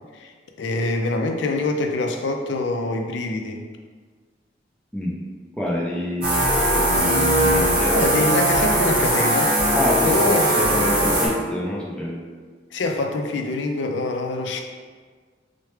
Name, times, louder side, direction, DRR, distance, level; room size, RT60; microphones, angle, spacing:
voice 1, 0.6-3.6 7.9-9.6 10.0-10.6 12.7-14.6, left 2 dB, 90° left, 4 dB, 0.4 m, -25 dB
voice 2, 5.6-6.5 6.8-8.0 9.7-12.2, left 1 dB, 5° left, -5 dB, 0.5 m, -27 dB
sound 1, 6.2-11.3, right 1 dB, 30° right, 0.9 m, -19 dB
4.5 x 2.1 x 3.2 m, 1.5 s
head